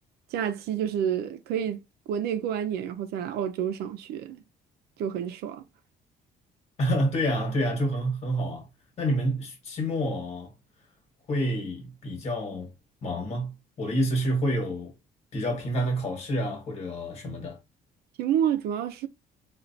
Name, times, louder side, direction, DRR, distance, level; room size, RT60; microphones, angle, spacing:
voice 1, 0.3-1.8 2.1-4.4 5.0-5.6 18.2-19.1, right 9 dB, 85° right, 0.6 m, -29 dB
voice 2, 6.8-8.7 9.0-10.5 11.3-12.7 13.0-14.9 15.3-17.6, equal, 45° left, 1.3 m, -28 dB
4.3 x 2.5 x 2.6 m
cardioid pair, 170°, 16 cm